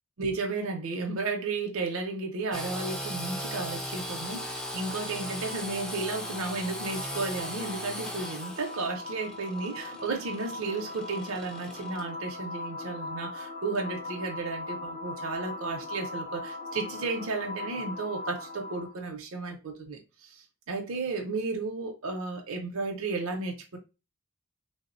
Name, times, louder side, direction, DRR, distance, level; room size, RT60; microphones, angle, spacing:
voice 1, 0.2-23.8, right 3 dB, 65° right, 0.5 m, -33 dB
sound 1, 2.4-19.1, left 2 dB, 45° left, 0.6 m, -41 dB
Engine / Sawing, 2.5-12.0, equal, 5° left, 0.3 m, -38 dB
3.4 x 2.0 x 2.4 m
head